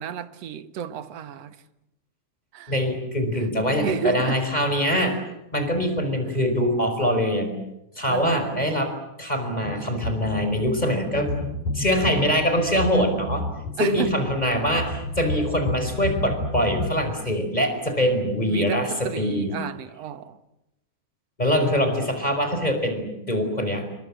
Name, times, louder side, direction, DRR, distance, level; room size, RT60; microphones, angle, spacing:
voice 1, 0.0-1.6 2.5-2.7 3.3-4.4 5.0-5.1 6.2-6.3 8.1-8.7 13.8-14.1 18.5-20.4, right 9 dB, 60° right, 2.3 m, -32 dB
voice 2, 2.7-5.2 5.5-7.6 7.9-8.9 9.2-11.3 11.7-13.5 13.8-19.5 21.4-23.8, equal, 15° left, 5.1 m, -23 dB
sound 1, 9.6-16.9, left 2 dB, 70° left, 7.7 m, -31 dB
29.5 x 24.0 x 7.6 m
omnidirectional pair, 3.4 m